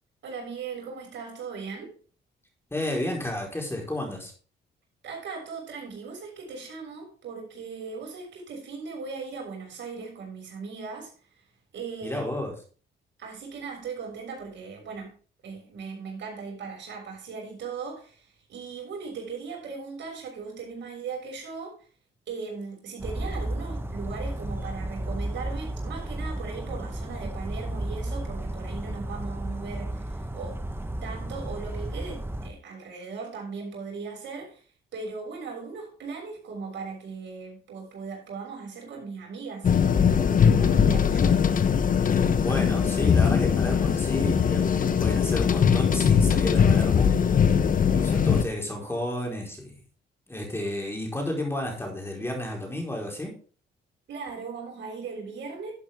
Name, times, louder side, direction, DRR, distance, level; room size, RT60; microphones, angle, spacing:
voice 1, 0.2-1.9 5.0-11.1 11.7-12.2 13.2-15.1 15.4-21.8 22.3-30.6 31.0-34.6 34.9-41.4 54.1-55.7, right 5 dB, 65° right, -1 dB, 6.4 m, -38 dB
voice 2, 2.7-4.3 12.0-12.5 42.1-47.1 47.7-49.7 50.3-53.4, left 1 dB, 10° left, 0 dB, 4.7 m, -32 dB
Bird vocalization bird call bird song, 23.0-32.5, right 1 dB, 10° right, 1.4 m, -33 dB
sound 1, 39.6-48.4, left 7 dB, 45° left, 0.9 m, -21 dB
12.5 x 8.5 x 3.7 m, 0.39 s
cardioid pair, 90°, 20 cm